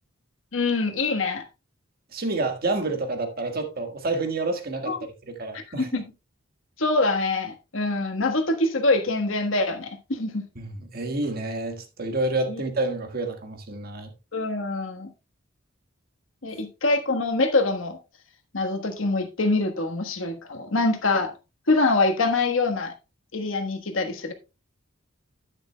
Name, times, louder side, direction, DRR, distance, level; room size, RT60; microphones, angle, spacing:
voice 1, 0.5-1.5 4.9-5.0 5.5-6.0 6.8-10.4 12.5-12.6 14.3-15.1 16.4-18.0 18.5-21.3 21.7-22.9 23.3-24.3, left 3 dB, 75° left, 1.3 m, -24 dB
voice 2, 2.1-6.0 10.5-14.1, right 2 dB, 50° right, 1.6 m, -29 dB
10.0 x 9.8 x 2.2 m
head